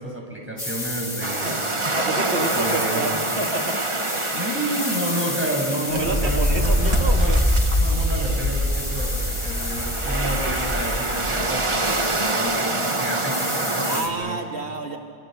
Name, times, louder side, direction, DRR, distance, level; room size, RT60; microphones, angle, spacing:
voice 1, 0.0-1.8 2.5-3.1 4.3-7.4 7.8-14.4, right 1 dB, 10° right, -1 dB, 7.1 m, -30 dB
sound 1, 0.6-14.1, left 1 dB, 50° left, 3.9 m, -32 dB
Waves on Beach, 1.2-14.0, right 2 dB, 30° right, 1.4 m, -27 dB
voice 2, 1.9-3.6 5.9-7.4 10.1-10.3 13.8-15.0, right 3 dB, 85° right, 2 dB, 2.1 m, -29 dB
sound 2, 5.9-12.0, equal, 20° left, 7.4 m, -23 dB
30.0 x 28.0 x 6.7 m, 2.2 s
omnidirectional pair, 1.1 m